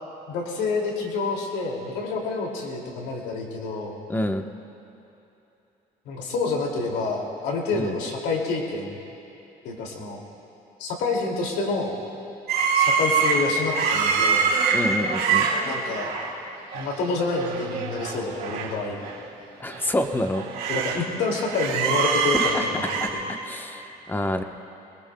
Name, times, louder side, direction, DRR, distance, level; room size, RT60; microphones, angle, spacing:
voice 1, 0.3-4.0 6.0-9.0 9.6-10.2 10.8-11.9 12.7-14.5 15.6-16.1 16.7-19.0 20.7-23.2, left 3 dB, 90° left, 0 dB, 2.5 m, -28 dB
voice 2, 4.1-4.4 7.7-8.0 14.7-15.5 19.6-20.5 22.3-22.6 23.0-24.4, left 1 dB, 10° left, 5 dB, 1.0 m, -27 dB
sound 1, 12.5-16.3 16.7-16.9 17.2-18.7 19.0-19.1 19.7-21.0 21.3-23.1, right 5 dB, 75° right, 3.5 m, -24 dB
24.5 x 21.5 x 2.2 m, 3.0 s
cardioid pair, 110°, 17 cm